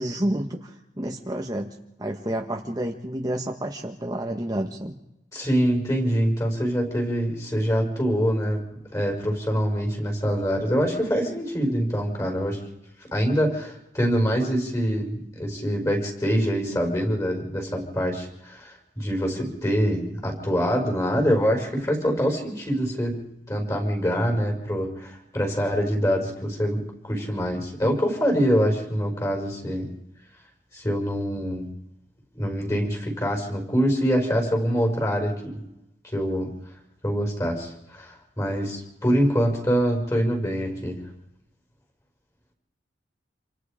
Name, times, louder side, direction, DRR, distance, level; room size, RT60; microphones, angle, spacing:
voice 1, 0.0-4.9, right 1 dB, 20° right, 2 dB, 1.4 m, -30 dB
voice 2, 5.3-8.6 8.9-12.6 13.1-23.2 23.5-29.9 30.7-31.8 32.3-35.6 36.1-36.5 37.0-41.0, equal, 20° left, 2 dB, 5.2 m, -25 dB
28.0 x 26.0 x 5.1 m, 0.89 s
head